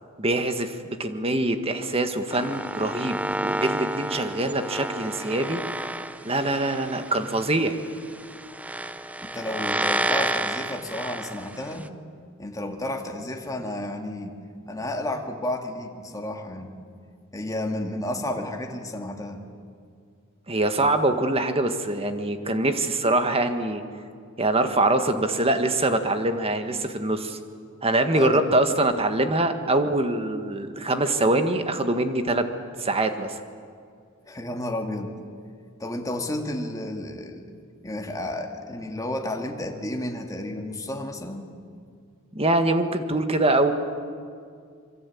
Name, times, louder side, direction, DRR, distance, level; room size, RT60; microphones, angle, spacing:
voice 1, 0.2-5.6 6.2-7.7 20.5-23.8 24.4-27.4 27.8-32.4 32.8-33.3 42.3-43.7, right 2 dB, 30° right, 8 dB, 1.7 m, -24 dB
sound 1, 2.3-11.9, right 1 dB, 5° right, 0.7 m, -30 dB
voice 2, 9.2-11.9 12.4-14.4 14.7-16.8 17.3-19.4 28.1-28.5 34.3-35.1 35.8-37.4 37.8-41.4, left 1 dB, 15° left, 3 dB, 2.2 m, -32 dB
25.5 x 23.5 x 8.6 m, 2.2 s
head